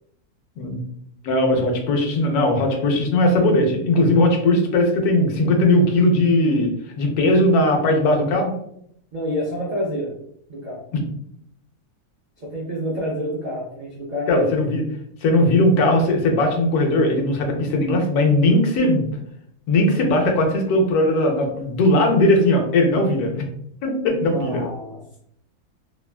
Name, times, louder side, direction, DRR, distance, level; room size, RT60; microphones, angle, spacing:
voice 1, 1.2-6.7 7.0-8.5 10.9-11.0 14.3-14.8 15.2-19.1 19.7-23.4 23.8-24.6, left 1 dB, 85° left, 3 dB, 1.2 m, -18 dB
voice 2, 9.1-10.1 10.5-10.8 12.4-14.5 24.1-25.0, equal, 65° right, -5 dB, 0.4 m, -28 dB
3.0 x 2.2 x 2.3 m, 0.71 s
omnidirectional pair, 1.6 m